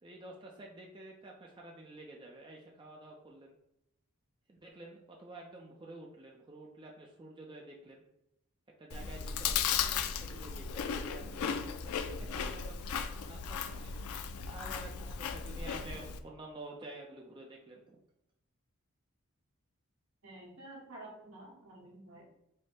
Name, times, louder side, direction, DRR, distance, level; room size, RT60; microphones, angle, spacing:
voice 1, 0.0-3.5 4.5-8.0 8.8-12.8 13.2-14.0 14.5-18.0, right 2 dB, 20° right, -1 dB, 0.4 m, -50 dB
Chewing mastication, 8.9-16.2, left 7 dB, 80° left, 0.4 m, -36 dB
voice 2, 20.2-22.3, right 1 dB, 75° right, -2 dB, 1.4 m, -50 dB
4.8 x 2.1 x 4.2 m, 0.83 s
head